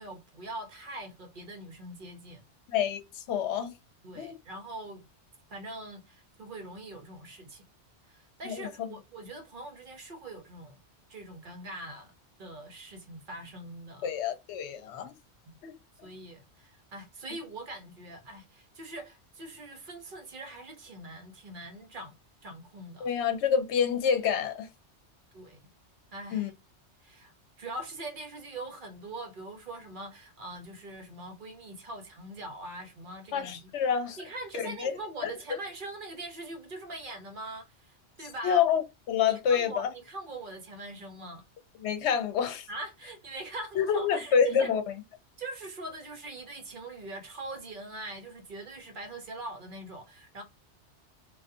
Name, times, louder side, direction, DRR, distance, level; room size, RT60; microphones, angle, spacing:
voice 1, 0.0-2.4 4.0-5.1 5.5-7.7 8.0-10.8 11.1-12.1 12.4-14.1 16.0-23.1 25.3-25.6 26.1-26.5 27.0-33.7 34.2-38.6 39.3-41.4 42.7-44.7 45.4-50.4, right 2 dB, 50° right, 0.8 m, -42 dB
voice 2, 2.7-3.7 4.2-4.4 8.4-8.9 14.0-15.1 15.6-15.8 23.0-24.7 26.3-26.5 33.3-34.2 34.5-34.9 35.2-35.3 38.4-39.9 41.8-42.7 43.8-44.8, left 7 dB, 75° left, 0.9 m, -27 dB
2.5 x 2.3 x 2.4 m
omnidirectional pair, 1.2 m